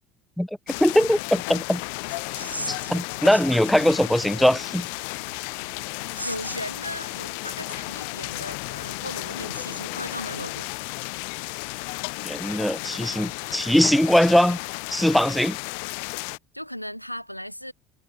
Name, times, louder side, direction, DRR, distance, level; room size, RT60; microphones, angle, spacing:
sound 1, 0.7-16.4, left 36 dB, 60° left, 1.7 m, -33 dB
voice 1, 0.8-1.8 2.7-4.9 12.2-14.6 14.9-15.6, equal, ahead, 2.5 m, -21 dB
sound 2, 1.7-9.2, right 1 dB, 90° right, 3.2 m, -42 dB
voice 2, 6.2-10.7 16.5-17.7, equal, 90° left, 4.2 m, -36 dB
figure-of-eight pair, 65°, 0 cm